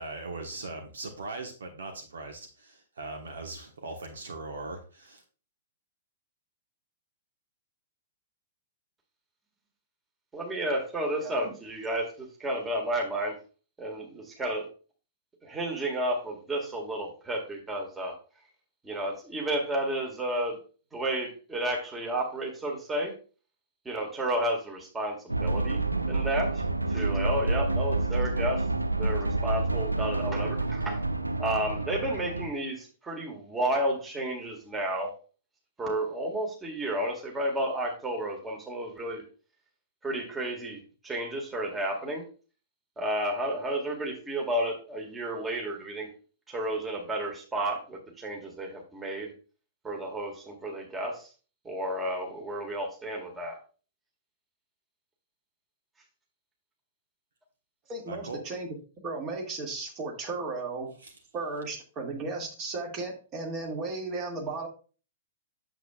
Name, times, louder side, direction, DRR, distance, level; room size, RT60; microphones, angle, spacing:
voice 1, 0.0-5.2 58.1-58.4 61.0-61.1, right 3 dB, 65° right, 4 dB, 1.2 m, -40 dB
voice 2, 10.3-13.3 13.8-14.7 15.4-18.1 18.8-20.6 20.9-23.1 23.9-25.8 26.1-26.6 26.9-28.6 29.0-31.0 31.4-35.1 35.8-39.2 40.0-42.2 43.0-46.1 46.5-49.3 49.8-51.3 51.7-53.6, right 1 dB, 10° right, 0 dB, 1.8 m, -32 dB
sound 1, 25.3-32.5, right 2 dB, 85° right, 0.7 m, -28 dB
voice 3, 57.9-58.7 59.0-60.9 61.3-64.7, right 3 dB, 30° right, 0 dB, 2.2 m, -35 dB
8.0 x 7.3 x 2.4 m, 0.38 s
figure-of-eight pair, 110°, 0 cm